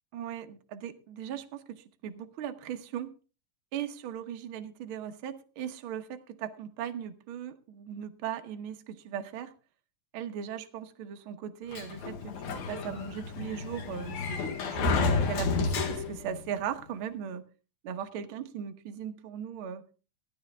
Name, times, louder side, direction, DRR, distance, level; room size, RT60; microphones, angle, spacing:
voice 1, 0.1-3.1 3.7-9.5 10.1-17.4 17.8-19.8, right 9 dB, 65° right, 1.3 m, -38 dB
Sliding door, 11.7-16.4, left 4 dB, 65° left, 2.9 m, -30 dB
16.0 x 12.0 x 3.5 m
omnidirectional pair, 3.8 m